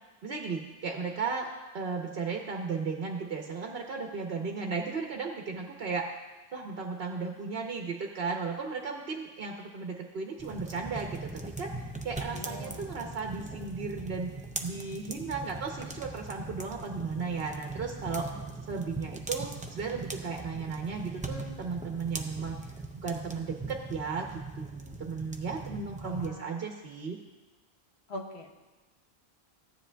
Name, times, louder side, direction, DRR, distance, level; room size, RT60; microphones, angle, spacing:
voice 1, 0.2-1.5 1.7-6.1 6.5-14.3 14.6-18.3 18.7-22.6 22.9-24.3 24.5-27.2, right 4 dB, 65° right, 1 dB, 1.0 m, -35 dB
sound 1, 10.4-26.3, right 2 dB, 10° right, 0.3 m, -40 dB
voice 2, 12.3-12.8 26.0-26.6 28.1-28.5, left 2 dB, 80° left, 1 dB, 1.3 m, -42 dB
15.0 x 9.9 x 2.3 m, 1.2 s
omnidirectional pair, 1.1 m